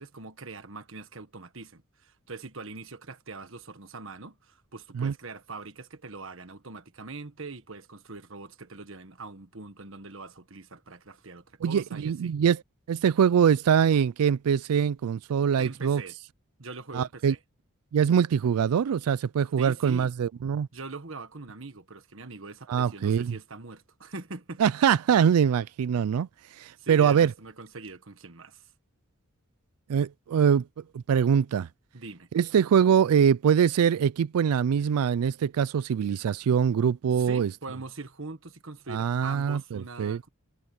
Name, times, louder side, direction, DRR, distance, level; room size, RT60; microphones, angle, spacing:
voice 1, 0.0-12.4 15.6-16.2 16.6-17.4 19.6-20.1 20.4-24.6 26.8-28.7 31.9-32.3 37.1-40.3, right 3 dB, 60° right, 1.6 m, -42 dB
voice 2, 11.6-12.6 12.9-16.0 16.9-17.3 17.9-20.7 22.7-23.3 24.6-27.3 29.9-30.7 30.9-31.7 32.3-37.5 38.9-40.3, right 7 dB, 85° right, 0.4 m, -23 dB
head